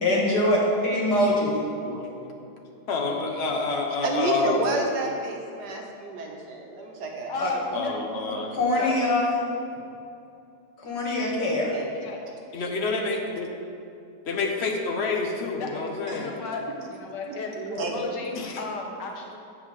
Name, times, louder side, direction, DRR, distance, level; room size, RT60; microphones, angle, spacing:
voice 1, 0.0-1.6 7.4-7.5 8.5-9.4 10.8-11.7, left 1 dB, 70° left, -4 dB, 2.3 m, -23 dB
voice 2, 1.0-1.4 1.8-2.3 2.9-4.6 7.7-8.5 12.5-13.5 14.2-16.4 18.3-18.5, left 4 dB, 45° left, 1 dB, 1.1 m, -28 dB
voice 3, 4.0-7.5 11.7-11.9 12.2-12.3 16.1-16.2 17.3-18.0, right 2 dB, 70° right, 0 dB, 1.6 m, -30 dB
voice 4, 7.3-8.1 8.7-8.9 11.9-12.3 15.5-16.6 16.9-19.4, left 3 dB, 85° left, 0 dB, 1.7 m, -35 dB
8.4 x 4.6 x 7.1 m, 2.6 s
omnidirectional pair, 1.8 m